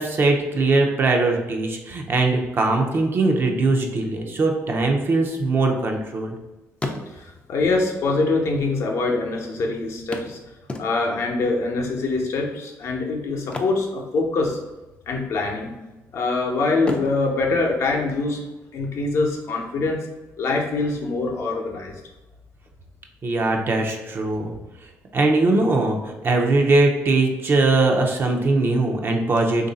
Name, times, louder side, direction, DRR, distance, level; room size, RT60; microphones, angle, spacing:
voice 1, 0.0-6.3 23.2-24.5 25.1-29.7, right 2 dB, 40° right, 2 dB, 0.6 m, -21 dB
sound 1, 5.4-6.4 6.7-7.5 8.4-8.5 8.8-8.9 10.1-11.3 13.4-14.7 14.9-15.2 15.7-16.3 16.8-18.5 20.5-20.6 21.0-21.1, left 2 dB, 20° left, 0.5 m, -35 dB
voice 2, 7.1-10.4 10.8-14.6 15.1-15.7 16.1-18.4 18.7-20.1 20.4-21.9, left 3 dB, 60° left, 1 dB, 0.8 m, -24 dB
3.1 x 2.6 x 4.0 m, 1.1 s
cardioid pair, 95°, 6 cm